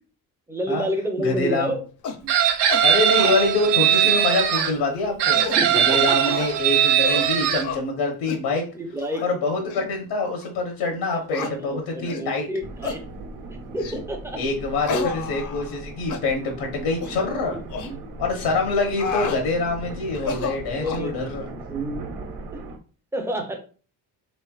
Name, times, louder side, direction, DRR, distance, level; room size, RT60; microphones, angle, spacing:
voice 1, 0.5-1.8 2.2-2.3 5.3-6.3 8.8-9.2 11.1-13.0 13.7-14.4 14.9-15.1 17.5-18.0 20.4-20.5 20.8-21.2 21.7-22.1 22.5-22.7 23.1-23.6, equal, 5° right, 3 dB, 0.5 m, -29 dB
voice 2, 1.2-1.7 2.8-5.4 5.7-8.7 9.2-12.5 14.4-17.6 18.2-21.5, left 3 dB, 90° left, 2 dB, 1.0 m, -25 dB
sound 1, 2.0-2.2 2.7-2.8 3.2-3.4 3.8-4.2 4.5-4.6 5.1-5.6 6.3-6.6 7.0-7.3 7.6-7.8 8.3-8.4 9.0-9.2 9.7-9.8 10.4-10.5 11.3-11.5 12.0-12.3 12.8-13.0 13.8-14.0 14.8-15.8 16.1-16.2 16.9-17.1 17.7-17.9 18.7-19.4 20.1-21.1, left 5 dB, 50° left, 0.6 m, -31 dB
Chicken rooster, 2.3-4.7 5.2-7.6, right 10 dB, 80° right, 0.7 m, -20 dB
sound 2, 12.6-22.8, right 2 dB, 50° right, 1.0 m, -38 dB
3.7 x 3.2 x 2.3 m, 0.38 s
cardioid pair, 155°, 40 cm